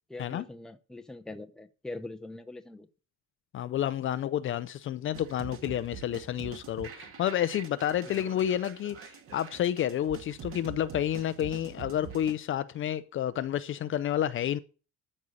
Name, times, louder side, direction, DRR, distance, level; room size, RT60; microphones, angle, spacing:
voice 1, 0.1-2.9 8.0-8.3, left 2 dB, ahead, 0.7 m, -43 dB
voice 2, 3.5-14.6, left 11 dB, 40° left, 0.6 m, -30 dB
sound 1, 5.1-12.3, right 7 dB, 45° right, 2.0 m, -45 dB
13.5 x 5.5 x 6.3 m
cardioid pair, 175°, 31 cm